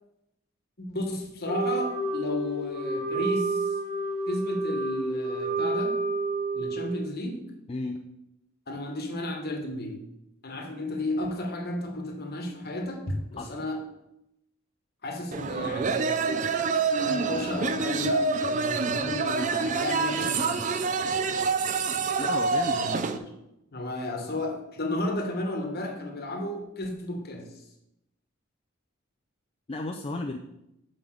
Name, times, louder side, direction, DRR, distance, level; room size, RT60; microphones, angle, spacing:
voice 1, 0.8-3.6 4.3-6.0 6.5-7.5 8.7-10.0 10.4-13.8 15.0-16.2 17.0-20.7 22.7-23.2 23.7-27.5, left 1 dB, 50° left, 2 dB, 1.3 m, -33 dB
Wind instrument woodwind instrument, 1.4-7.1, right 2 dB, 85° right, 2.2 m, -29 dB
voice 2, 7.7-8.0 13.4-13.5 22.2-22.9 29.7-30.4, left 2 dB, 25° left, 2 dB, 0.4 m, -33 dB
sound 1, 15.3-23.2, right 4 dB, 35° right, 0.4 m, -27 dB
5.8 x 5.2 x 6.3 m, 0.86 s
head